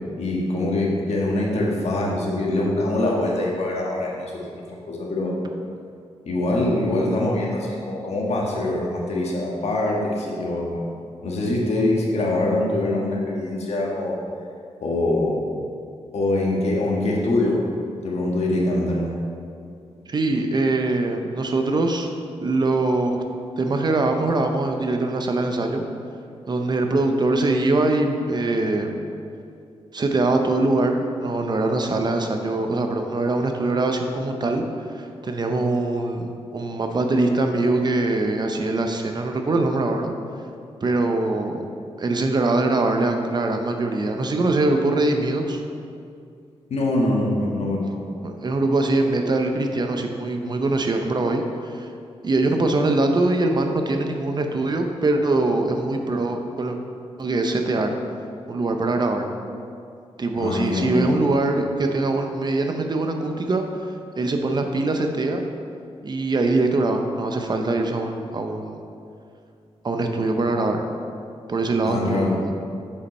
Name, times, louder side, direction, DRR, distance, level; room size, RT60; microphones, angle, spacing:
voice 1, 0.2-5.4 6.2-10.8 11.2-14.2 14.8-15.4 16.1-17.7 18.0-19.2 46.7-48.1 60.4-61.0 71.8-72.4, left 2 dB, 70° left, -3 dB, 1.4 m, -24 dB
voice 2, 20.1-22.1 22.4-23.2 23.6-25.8 26.5-28.9 29.9-34.6 34.9-36.3 36.5-40.1 40.8-41.7 42.0-45.6 48.2-51.4 51.7-51.9 52.2-56.8 57.2-58.0 58.5-59.3 60.2-63.7 64.1-65.4 66.0-68.8 69.8-70.8 71.5-72.5, right 2 dB, 40° right, 4 dB, 0.6 m, -22 dB
7.0 x 5.3 x 4.2 m, 2.4 s
wide cardioid pair, 100°, 11 cm